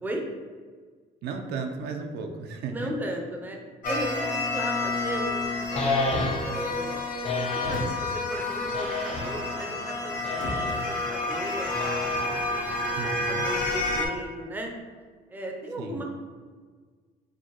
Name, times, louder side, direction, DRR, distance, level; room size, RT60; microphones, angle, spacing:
voice 1, 1.2-2.9 13.0-13.5 15.8-16.0, right 4 dB, 75° right, 4 dB, 0.5 m, -34 dB
voice 2, 2.7-3.6 3.8-5.9 6.5-7.0 7.3-14.7 15.3-16.0, right 1 dB, 10° right, 1 dB, 0.5 m, -36 dB
sound 1, 3.8-14.1, left 2 dB, 50° left, 1.0 m, -29 dB
sound 2, 3.9-4.3 7.2-8.2 9.7-10.8, equal, 75° left, 0.9 m, -39 dB
sound 3, 5.8-6.7 7.2-7.9 8.7-9.5 10.2-10.9 11.7-12.5, left 2 dB, 35° left, 0.6 m, -30 dB
4.5 x 2.2 x 2.9 m, 1.6 s
cardioid pair, 110°, 17 cm